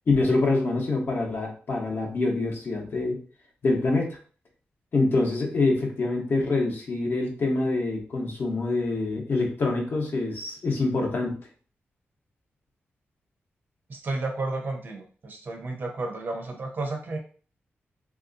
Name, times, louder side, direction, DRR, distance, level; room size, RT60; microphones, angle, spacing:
voice 1, 0.1-3.2 3.6-4.2 4.9-11.4, left 3 dB, 55° left, 0 dB, 1.0 m, -25 dB
voice 2, 13.9-17.2, right 2 dB, 50° right, 2 dB, 0.8 m, -32 dB
3.4 x 2.8 x 2.6 m, 0.40 s
wide cardioid pair, 115°, 4 cm